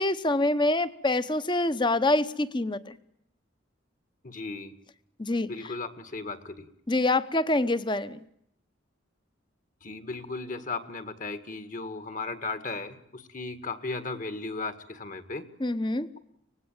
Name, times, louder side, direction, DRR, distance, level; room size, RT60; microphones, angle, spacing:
voice 1, 0.0-3.0 5.2-5.5 6.9-8.2 15.6-16.1, left 2 dB, 25° left, 14 dB, 1.0 m, -26 dB
voice 2, 4.2-4.7 5.5-6.7 9.8-15.5, left 3 dB, 40° left, 10 dB, 1.9 m, -36 dB
24.5 x 19.0 x 9.1 m, 0.74 s
head